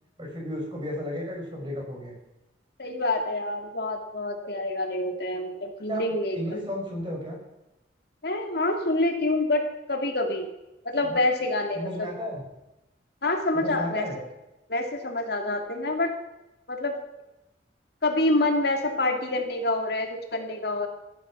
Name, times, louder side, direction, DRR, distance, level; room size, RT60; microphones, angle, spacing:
voice 1, 0.2-2.1 5.9-6.0 6.3-7.4 11.0-11.2 11.7-12.4 13.5-14.2, equal, 25° right, -1 dB, 5.2 m, -33 dB
voice 2, 2.8-6.6 8.2-10.5 10.8-12.1 13.2-14.1 14.7-16.2 16.7-17.0 18.0-20.9, left 2 dB, 60° left, 3 dB, 2.3 m, -27 dB
15.5 x 11.5 x 6.0 m, 0.95 s
head